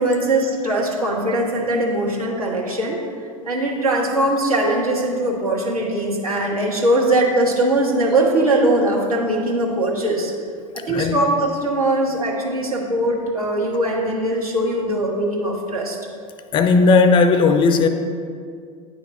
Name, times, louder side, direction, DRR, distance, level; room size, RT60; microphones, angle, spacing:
voice 1, 0.0-3.0 3.4-10.3 10.7-16.0, right 1 dB, 80° right, 1.2 m, -21 dB
voice 2, 10.9-11.2 16.5-17.9, left 4 dB, 25° left, 0.4 m, -15 dB
9.5 x 3.5 x 3.6 m
figure-of-eight pair, 80°, 18 cm